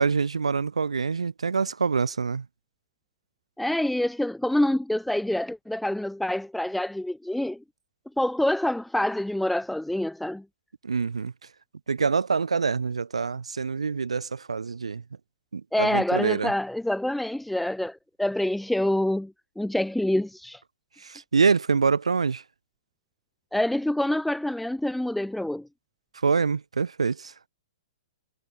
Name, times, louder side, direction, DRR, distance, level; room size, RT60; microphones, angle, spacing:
voice 1, 0.0-2.4 10.8-11.3 11.9-15.0 15.5-16.5 21.0-22.4 26.2-27.3, right 5 dB, 85° right, 1.3 m, -25 dB
voice 2, 3.6-7.6 8.2-10.4 15.7-20.6 23.5-25.7, left 1 dB, ahead, 1.7 m, -26 dB
hypercardioid pair, 120°, 3 cm